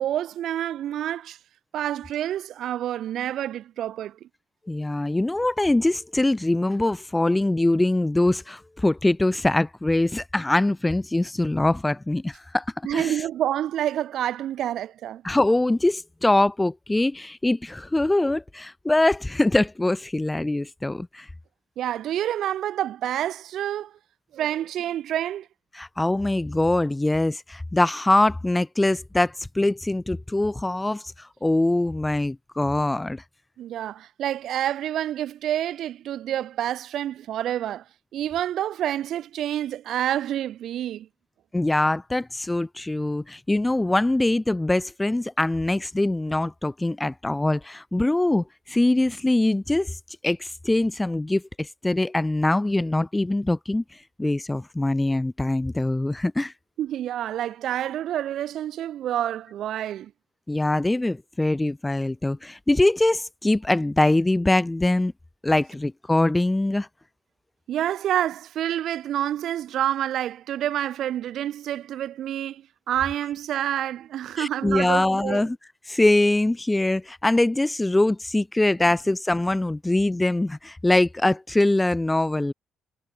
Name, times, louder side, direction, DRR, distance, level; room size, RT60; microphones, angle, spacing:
voice 1, 0.0-1.4 1.7-4.2 12.8-15.2 21.8-23.9 24.3-25.5 33.6-37.8 38.1-41.1 56.8-60.1 67.7-75.5, right 11 dB, 65° right, 2.6 m, -28 dB
voice 2, 4.7-12.6 12.9-13.1 15.2-21.3 25.7-33.2 41.5-50.0 50.2-53.8 54.2-56.5 60.5-65.1 65.4-66.9 74.4-75.6 75.9-82.5, left 2 dB, 10° left, 0.7 m, -23 dB
cardioid pair, 155°, 0 cm